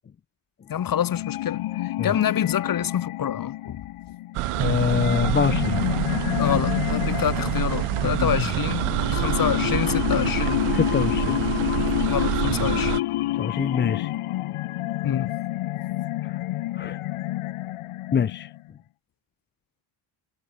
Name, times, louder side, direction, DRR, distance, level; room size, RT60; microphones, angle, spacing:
voice 1, 0.7-3.8 6.4-10.7 12.1-13.0 15.0-15.3, left 9 dB, 40° left, 1.9 m, -27 dB
sound 1, 0.8-18.7, left 16 dB, 85° left, 3.2 m, -28 dB
sound 2, 4.3-13.0, right 18 dB, 85° right, 1.4 m, -27 dB
voice 2, 4.6-5.8 8.2-8.3 10.7-11.4 13.4-14.1 16.8-17.0 18.1-18.5, left 7 dB, 20° left, 0.6 m, -24 dB
cardioid pair, 140°, 50 cm